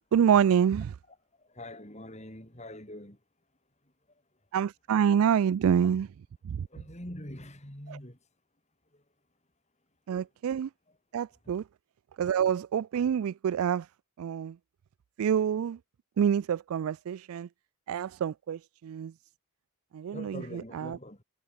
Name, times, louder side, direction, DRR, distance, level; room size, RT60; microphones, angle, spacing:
voice 1, 0.1-0.9 4.5-6.1 6.4-6.7 7.9-8.0 10.1-10.7 11.1-11.6 12.2-13.9 14.2-14.6 15.2-15.8 16.2-17.5 17.9-19.1 19.9-21.0, right 8 dB, 75° right, 0.3 m, -27 dB
voice 2, 1.4-3.2 6.7-8.2 8.9-9.0 20.1-21.2, left 1 dB, 30° left, 4.4 m, -44 dB
head